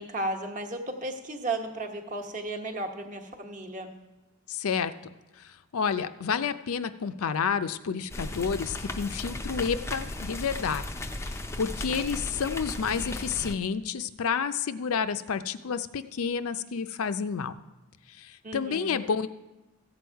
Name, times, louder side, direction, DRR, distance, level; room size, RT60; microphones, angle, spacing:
voice 1, 0.0-3.9 18.4-19.0, right 2 dB, 35° right, 4 dB, 1.1 m, -34 dB
voice 2, 4.5-4.9 5.4-10.9 11.3-17.5 18.1-19.3, left 6 dB, 70° left, 11 dB, 0.5 m, -30 dB
sound 1, 8.1-13.6, left 1 dB, 10° left, 0.4 m, -36 dB
14.5 x 7.9 x 4.6 m, 1.1 s
head